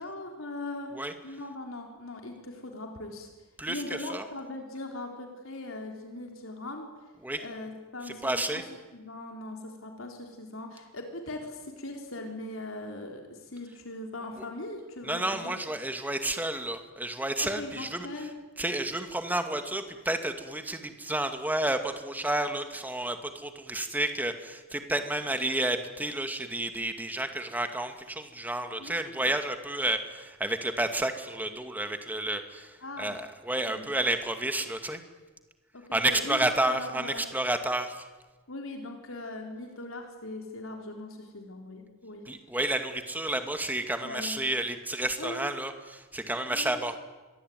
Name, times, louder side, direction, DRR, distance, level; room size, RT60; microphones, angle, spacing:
voice 1, 0.0-1.0 1.2-3.3 3.7-6.9 7.4-8.6 8.9-15.5 17.4-18.3 28.8-29.3 32.8-33.2 33.7-33.9 35.7-36.4 36.7-37.2 38.5-42.2 44.0-44.3 45.2-45.6 46.5-47.0, left 2 dB, 70° left, 2 dB, 4.0 m, -40 dB
voice 2, 3.6-4.2 7.2-7.4 8.2-8.6 14.4-14.5 15.0-18.1 18.6-35.0 35.9-38.1 42.3-47.0, right 1 dB, 10° right, 7 dB, 2.3 m, -31 dB
26.5 x 22.5 x 9.4 m, 1.2 s
head